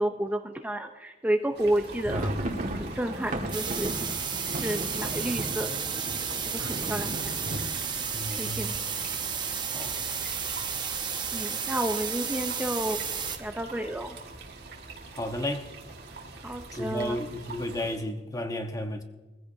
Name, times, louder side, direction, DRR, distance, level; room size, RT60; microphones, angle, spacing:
voice 1, 0.0-2.3 2.7-3.9 4.5-5.7 6.4-7.3 8.4-8.8 11.3-14.2 16.4-17.2, right 1 dB, 10° right, 0.6 m, -31 dB
sound 1, 1.5-18.0, right 3 dB, 65° right, 1.8 m, -45 dB
sound 2, 1.7-9.4 9.7-9.8 10.1-10.3 10.9-11.4, right 1 dB, 50° right, 1.9 m, -35 dB
sound 3, 3.5-13.4, right 6 dB, 25° right, 0.9 m, -32 dB
voice 2, 8.1-8.7 9.7-10.0 15.1-15.7 16.7-19.0, left 1 dB, 20° left, 1.1 m, -33 dB
21.0 x 15.5 x 2.7 m
head